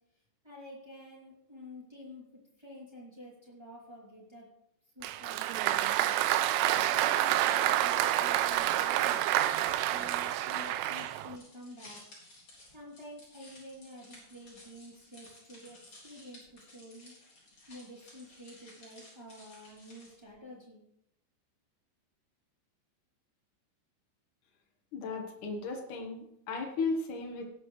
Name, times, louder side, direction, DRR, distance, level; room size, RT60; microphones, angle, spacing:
voice 1, 0.4-2.2 2.6-4.5 4.9-6.2 6.7-9.3 9.9-12.0 12.7-17.1 17.7-20.9, equal, 25° right, -5 dB, 0.6 m, -49 dB
Applause, 5.0-11.4, right 13 dB, 85° right, 3.2 m, -28 dB
sound 1, 6.9-20.3, left 1 dB, 30° left, 4.0 m, -56 dB
voice 2, 24.9-27.4, left 3 dB, 75° left, 2 dB, 1.8 m, -35 dB
18.0 x 8.2 x 3.2 m, 0.79 s
omnidirectional pair, 5.7 m